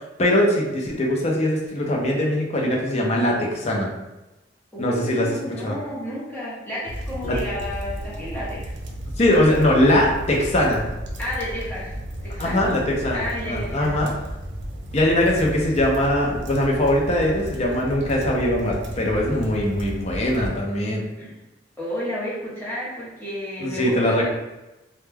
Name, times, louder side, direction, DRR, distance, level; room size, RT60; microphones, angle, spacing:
voice 1, 0.2-3.9 4.8-5.4 5.6-5.8 7.2-7.4 9.2-10.9 12.4-13.2 13.4-14.1 14.9-21.1 23.6-24.2, left 1 dB, 35° left, -2 dB, 0.5 m, -21 dB
voice 2, 4.7-8.8 11.2-12.0 12.2-12.7 13.1-13.9 21.2-21.4 21.8-24.2, left 1 dB, 10° left, -9 dB, 0.9 m, -31 dB
sound 1, 6.9-20.5, equal, 65° right, 0.5 m, -33 dB
2.2 x 2.1 x 3.2 m, 1.0 s
head